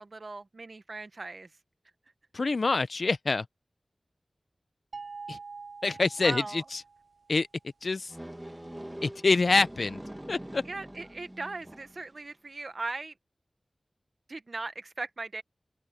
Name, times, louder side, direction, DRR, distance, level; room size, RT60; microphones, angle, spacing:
voice 1, 0.0-1.5 6.2-6.6 10.6-13.1 14.3-15.4, right 3 dB, 60° right, 1.1 m, -38 dB
voice 2, 2.3-3.5 5.3-5.4 5.8-6.8 7.3-7.5 7.8-8.1 9.0-10.0 10.3-10.6, left 3 dB, 70° left, 0.6 m, -26 dB
sound 1, 4.9-7.2, right 4 dB, 90° right, 0.7 m, -44 dB
sound 2, 8.1-12.1, right 1 dB, 15° right, 1.8 m, -44 dB
open air
wide cardioid pair, 70°, 0 cm